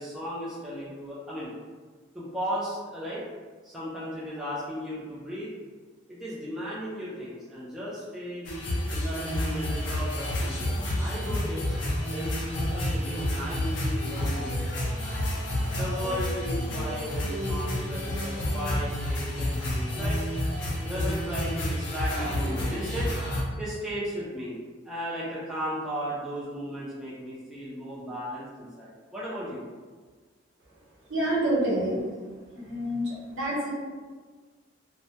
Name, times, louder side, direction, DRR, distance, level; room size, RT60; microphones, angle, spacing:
voice 1, 0.0-1.5 2.1-3.2 3.6-5.5 6.1-8.5 8.9-11.8 12.0-15.0 15.7-20.2 20.8-24.6 24.8-29.6, equal, 5° right, -9 dB, 0.4 m, -36 dB
sound 1, 8.5-23.4, left 1 dB, 60° left, 0.5 m, -29 dB
voice 2, 31.1-32.0 32.5-33.7, right 1 dB, 70° right, -6 dB, 0.8 m, -27 dB
2.2 x 2.1 x 2.7 m, 1.4 s
head